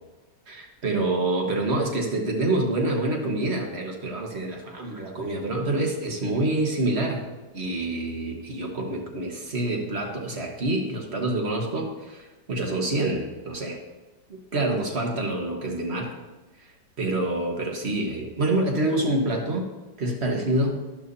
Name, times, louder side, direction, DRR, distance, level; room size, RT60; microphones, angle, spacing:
voice 1, 0.5-7.3 7.5-13.8 14.3-16.2 17.0-19.7 20.0-20.8, right 2 dB, 35° right, 2 dB, 1.5 m, -27 dB
12.0 x 11.5 x 2.8 m, 1.2 s
omnidirectional pair, 2.1 m